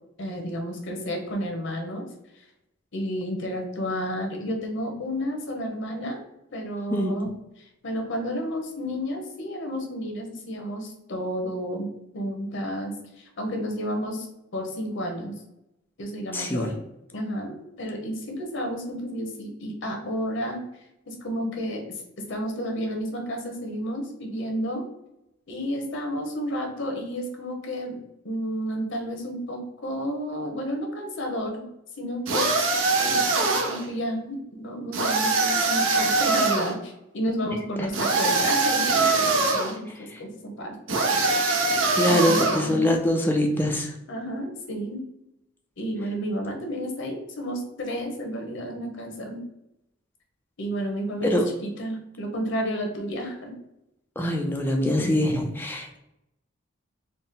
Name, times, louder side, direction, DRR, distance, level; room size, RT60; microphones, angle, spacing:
voice 1, 0.2-2.0 2.3-2.4 2.9-6.2 6.5-7.3 7.6-14.3 14.5-15.4 16.0-16.7 17.1-17.5 17.8-20.6 21.1-24.8 25.5-28.0 28.2-31.6 32.0-32.6 33.0-41.0 42.0-42.9 44.1-45.0 45.8-49.4 50.6-53.5 54.7-54.9, equal, 65° left, 2 dB, 0.9 m, -31 dB
voice 2, 6.9-7.3 16.3-16.7 37.8-37.9 40.0-40.2 41.9-44.0 51.2-51.4 54.2-56.0, left 1 dB, 10° left, 2 dB, 0.3 m, -24 dB
sound 1, 32.3-33.8 34.9-36.7 37.9-39.7 40.9-42.7, right 3 dB, 75° right, 0.7 m, -23 dB
4.0 x 2.1 x 3.6 m, 0.85 s
head